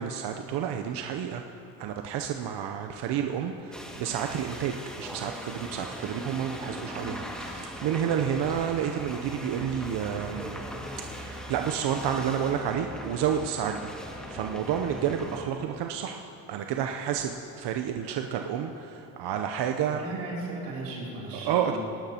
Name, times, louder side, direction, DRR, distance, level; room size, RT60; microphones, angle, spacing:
voice 1, 0.0-1.4 1.8-10.6 11.1-16.2 16.5-20.0 21.3-21.8, right 8 dB, 55° right, 4 dB, 0.8 m, -30 dB
sound 1, 3.7-15.4, equal, ahead, 1.9 m, -40 dB
voice 2, 19.9-21.8, right 2 dB, 90° right, -5 dB, 3.2 m, -36 dB
20.0 x 11.5 x 2.9 m, 2.8 s
supercardioid pair, 70°, 47 cm